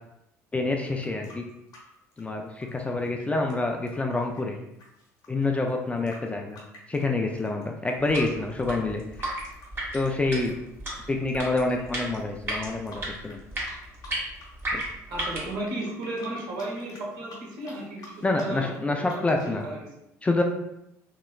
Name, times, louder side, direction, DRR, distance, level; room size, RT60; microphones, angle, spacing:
voice 1, 0.5-1.4 2.2-4.6 5.3-6.6 6.9-9.0 9.9-10.5 11.1-13.4 14.7-14.8 18.2-19.7 20.2-20.4, left 2 dB, 15° left, 2 dB, 0.4 m, -27 dB
sound 1, 0.8-7.9 8.3-11.4 11.7-11.8 12.1-13.4 13.7-14.5 14.7-19.6, left 2 dB, 50° left, 1.0 m, -49 dB
sound 2, 8.0-15.6, right 1 dB, 25° right, 1.2 m, -35 dB
voice 2, 15.1-18.7 19.0-19.9, right 1 dB, 55° right, -3 dB, 1.0 m, -34 dB
2.9 x 2.9 x 2.3 m, 0.83 s
figure-of-eight pair, 60°, 9 cm